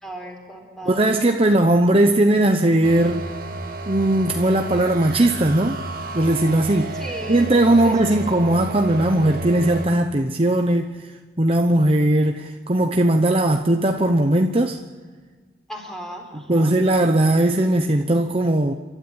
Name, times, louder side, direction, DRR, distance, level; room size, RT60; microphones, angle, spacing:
voice 1, 0.0-1.1 6.9-7.5 7.8-8.1 15.7-16.7, right 1 dB, 5° left, 4.3 m, -36 dB
voice 2, 0.8-3.3 3.9-5.8 6.1-6.9 7.3-10.9 11.4-14.8 16.3-18.7, right 1 dB, 35° right, 0.9 m, -18 dB
sound 1, 2.8-9.9, right 2 dB, 55° right, 2.0 m, -32 dB
29.0 x 13.0 x 8.9 m
head